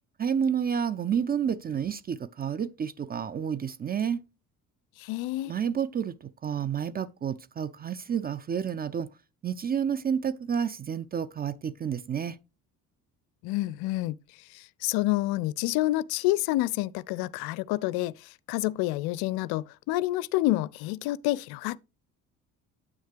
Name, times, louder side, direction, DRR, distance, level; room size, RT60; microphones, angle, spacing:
voice 1, 0.2-4.2 5.4-9.1 9.4-12.4, right 7 dB, 20° right, 0.4 m, -30 dB
voice 2, 5.0-5.5 13.4-14.2 14.5-21.8, left 17 dB, 55° left, 0.5 m, -28 dB
9.2 x 8.4 x 3.2 m
figure-of-eight pair, 50°, 45 cm